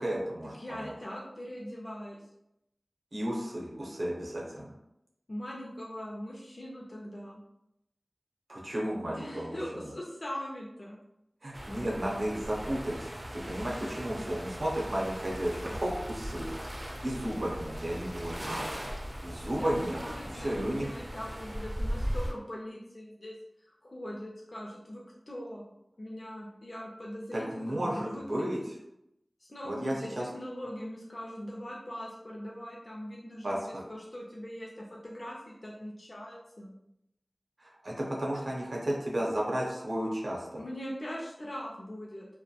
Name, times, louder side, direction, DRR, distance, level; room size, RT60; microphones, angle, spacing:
voice 1, 0.0-0.5 3.1-4.7 8.5-9.6 11.4-16.5 17.0-18.6 19.2-20.0 20.3-20.9 27.3-28.6 29.6-30.2 33.4-33.8 37.6-40.6, right 1 dB, 75° right, -3 dB, 0.6 m, -33 dB
voice 2, 0.5-2.3 5.3-7.4 9.1-11.0 19.5-23.4 23.8-25.6 26.0-28.7 29.4-36.7 40.6-42.3, equal, 50° left, -3 dB, 0.4 m, -41 dB
sound 1, 11.5-22.3, equal, 35° right, 0.4 m, -38 dB
2.2 x 2.1 x 2.7 m, 0.83 s
wide cardioid pair, 50°, 0 cm